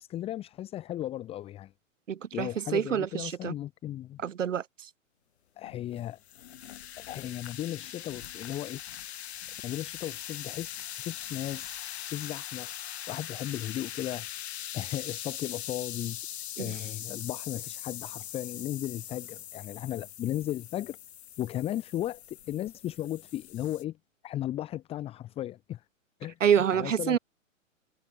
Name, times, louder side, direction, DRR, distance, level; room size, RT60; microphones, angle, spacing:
voice 1, 0.0-1.7 2.3-4.2 5.6-6.2 7.0-8.8 9.6-12.7 13.1-14.3 14.7-16.2 16.6-21.0 21.4-24.0 24.2-25.8 26.2-26.4 26.7-27.2, left 13 dB, 15° left, 0.9 m, -36 dB
voice 2, 2.1-3.5 4.2-4.9 16.6-16.8 26.4-27.2, right 8 dB, 70° right, 0.9 m, -27 dB
sound 1, 5.6-23.8, left 11 dB, 50° left, 3.3 m, -41 dB
figure-of-eight pair, 115°, 40 cm